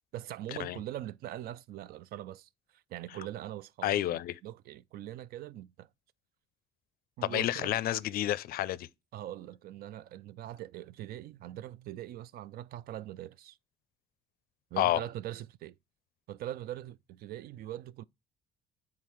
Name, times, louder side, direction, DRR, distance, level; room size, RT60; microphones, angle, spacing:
voice 1, 0.1-5.9 7.2-7.7 9.1-13.6 14.7-15.8 16.3-18.0, right 13 dB, 65° right, 0.4 m, -42 dB
voice 2, 3.8-4.4 7.2-8.9 14.8-15.0, left 13 dB, 65° left, 0.4 m, -29 dB
8.4 x 3.7 x 4.5 m
cardioid pair, 110°, 17 cm